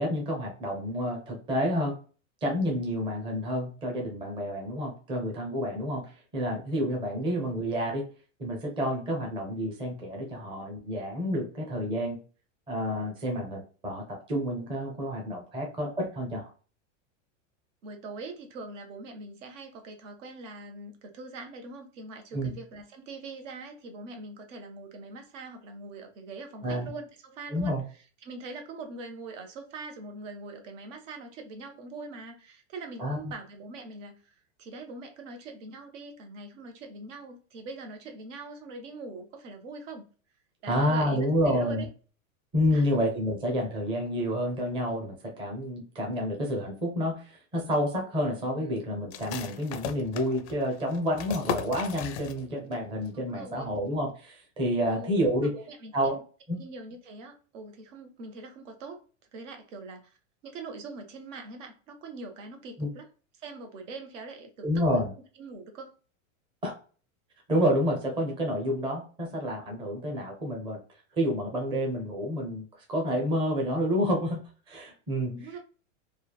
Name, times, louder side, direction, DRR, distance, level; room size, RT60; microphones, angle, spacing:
voice 1, 0.0-2.0 2.4-8.0 8.4-12.2 12.7-16.5 22.3-22.5 26.6-26.9 27.5-27.8 33.0-33.3 40.7-41.9 42.5-55.5 55.9-56.2 56.5-56.6 62.8-62.9 64.6-65.1 66.6-66.7 67.5-70.8 71.1-74.4 74.7-75.4, equal, 15° right, 0 dB, 0.6 m, -29 dB
voice 2, 17.8-27.8 28.2-34.2 34.6-40.1 40.6-41.9 42.7-42.9 48.5-48.7 53.1-53.7 54.9-55.2 55.4-56.2 56.6-59.0 59.3-60.2 60.4-63.1 63.3-65.0 65.4-65.9 75.2-75.6, right 3 dB, 65° right, 5 dB, 0.9 m, -43 dB
sound 1, 49.1-52.8 53.0-53.1 53.6-54.0, left 8 dB, 60° left, 0.5 m, -37 dB
3.2 x 2.2 x 2.2 m, 0.37 s
supercardioid pair, 150°, 39 cm